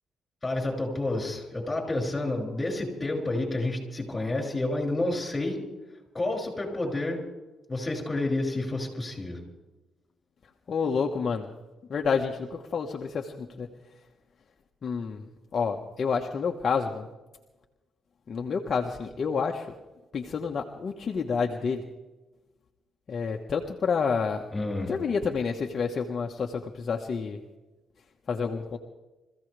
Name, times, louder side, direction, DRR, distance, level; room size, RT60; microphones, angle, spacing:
voice 1, 0.4-5.6 6.1-7.2 7.7-9.4 24.5-24.9, left 2 dB, 20° left, 0 dB, 6.6 m, -29 dB
voice 2, 10.7-11.5 11.9-13.7 14.8-17.1 18.3-19.7 20.1-21.8 23.1-24.4 24.9-27.4 28.3-28.8, left 5 dB, 45° left, 2 dB, 1.4 m, -29 dB
25.5 x 15.5 x 3.5 m, 1.1 s
cardioid pair, 90°, 0 cm